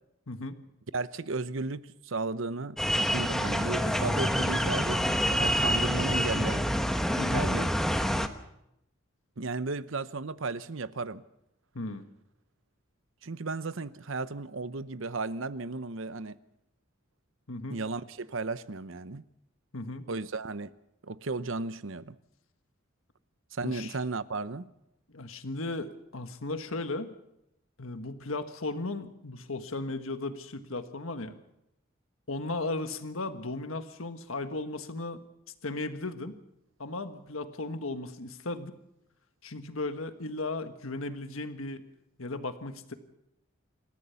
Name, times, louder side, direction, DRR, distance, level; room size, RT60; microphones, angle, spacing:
voice 1, 0.3-0.6 7.2-7.5 11.7-12.0 17.5-17.8 19.7-20.1 23.6-24.0 25.1-27.1 27.8-31.3 32.3-35.2 35.6-36.3 36.8-38.7 39.4-41.8 42.2-42.9, left 2 dB, 80° left, 1.5 m, -36 dB
voice 2, 0.9-6.7 7.1-7.7 9.4-11.2 13.2-16.4 17.7-19.2 20.1-20.7 21.0-22.1 23.5-24.7, right 3 dB, 70° right, 0.8 m, -34 dB
sound 1, 2.8-8.3, equal, ahead, 1.0 m, -27 dB
27.0 x 14.0 x 7.0 m
head